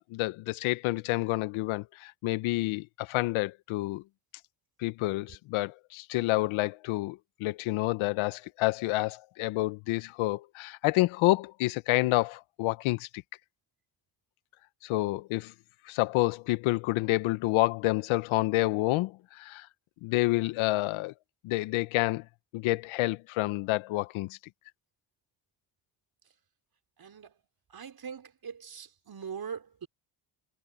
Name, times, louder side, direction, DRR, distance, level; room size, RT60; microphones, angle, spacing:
voice 1, 0.0-4.0 4.8-13.1 14.8-15.5 15.9-19.7 20.0-21.1 21.4-22.2 22.5-24.4, left 19 dB, 80° left, 1.1 m, -28 dB
voice 2, 27.7-29.9, right 7 dB, 50° right, 5.1 m, -41 dB
hypercardioid pair, 55°, 47 cm